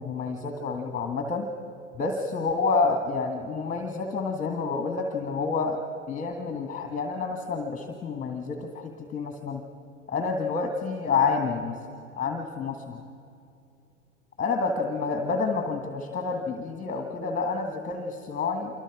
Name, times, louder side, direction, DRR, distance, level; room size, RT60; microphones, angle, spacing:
voice 1, 0.0-1.5 1.9-5.8 6.1-9.6 10.1-11.8 12.2-13.0 14.4-18.8, left 4 dB, 20° left, 4 dB, 1.7 m, -29 dB
27.0 x 24.0 x 4.9 m, 2.5 s
hypercardioid pair, 100°, 41 cm